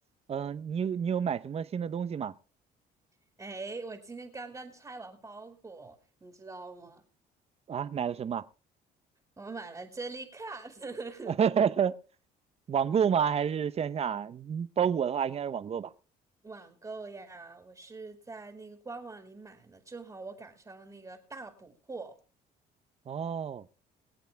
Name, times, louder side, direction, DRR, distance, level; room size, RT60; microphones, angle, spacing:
voice 1, 0.3-2.3 7.7-8.4 11.3-12.0 12.7-15.9 23.1-23.6, right 7 dB, 35° right, 0.8 m, -29 dB
voice 2, 3.4-7.0 9.4-11.4 16.4-22.2, right 3 dB, 20° right, 2.3 m, -43 dB
22.5 x 8.2 x 3.5 m
cardioid pair, 110°, 17 cm